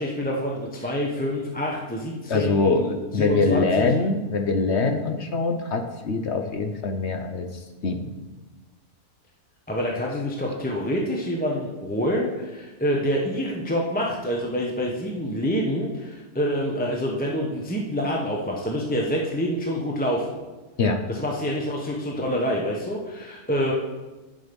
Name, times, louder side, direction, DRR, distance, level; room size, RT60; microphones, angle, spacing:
voice 1, 0.0-3.9 9.7-20.4 21.1-23.7, equal, 5° left, -2 dB, 1.0 m, -27 dB
voice 2, 2.3-7.5 7.8-8.1 20.8-21.0, left 3 dB, 55° left, 5 dB, 1.0 m, -23 dB
9.8 x 7.5 x 5.3 m, 1.2 s
omnidirectional pair, 1.6 m